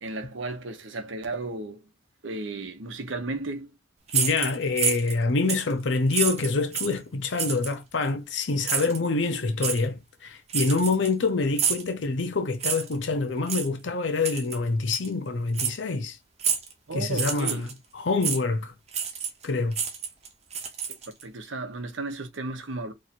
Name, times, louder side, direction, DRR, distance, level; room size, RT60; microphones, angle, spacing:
voice 1, 0.0-1.9 2.2-3.7 16.9-17.7 21.2-22.9, right 2 dB, 85° right, 0.9 m, -34 dB
voice 2, 4.1-16.2 16.9-17.7 17.9-18.7 19.4-19.8, left 3 dB, 75° left, 0.7 m, -26 dB
sound 1, 4.1-5.2 5.5-5.7 6.1-7.0 7.4-7.7 8.6-9.0 9.6-9.8 10.5-11.2 11.6-11.9 12.6-13.0 13.5-13.7 14.2-14.6 14.9-15.1 15.5-15.8 16.4-16.7 17.1-17.7 18.2-18.4 18.9-19.4 19.7-21.2, right 7 dB, 35° right, 0.8 m, -28 dB
3.1 x 2.5 x 4.2 m
head